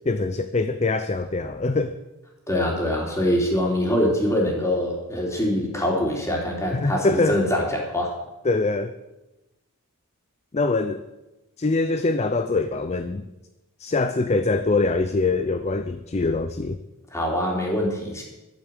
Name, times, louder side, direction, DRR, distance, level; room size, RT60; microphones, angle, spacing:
voice 1, 0.1-2.0 6.7-7.4 8.4-8.9 10.5-11.0 11.6-13.3 13.8-16.8, left 3 dB, 30° left, 11 dB, 0.5 m, -23 dB
voice 2, 2.5-8.1 17.1-18.2, left 1 dB, 15° left, -1 dB, 3.2 m, -24 dB
12.0 x 8.1 x 9.0 m, 1.0 s
head